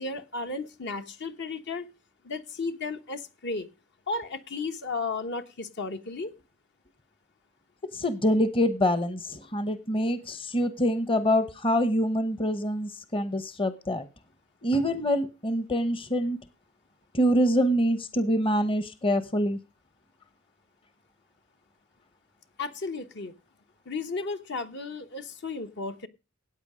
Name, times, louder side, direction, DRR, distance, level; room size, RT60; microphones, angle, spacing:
voice 1, 0.0-1.9 2.2-3.7 4.1-6.3 22.6-23.3 23.8-26.1, left 3 dB, 60° left, 1.2 m, -34 dB
voice 2, 7.9-14.1 14.6-16.4 17.1-19.6, equal, 25° left, 1.0 m, -25 dB
14.0 x 9.0 x 5.0 m
head